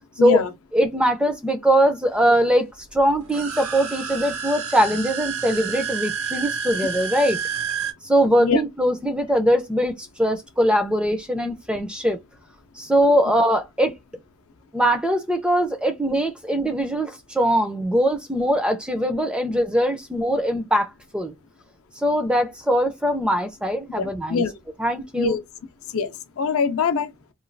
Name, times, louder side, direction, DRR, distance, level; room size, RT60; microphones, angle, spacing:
voice 1, 0.2-0.5 8.4-8.6 24.0-24.5 25.2-25.4 25.9-27.1, left 5 dB, 75° left, 0.5 m, -23 dB
voice 2, 0.7-7.4 8.0-12.2 12.8-13.9 14.7-21.3 22.0-24.4 24.8-25.4, equal, 5° right, 0.4 m, -21 dB
sound 1, 3.2-7.9, right 6 dB, 70° right, 0.6 m, -29 dB
3.0 x 2.3 x 2.6 m
head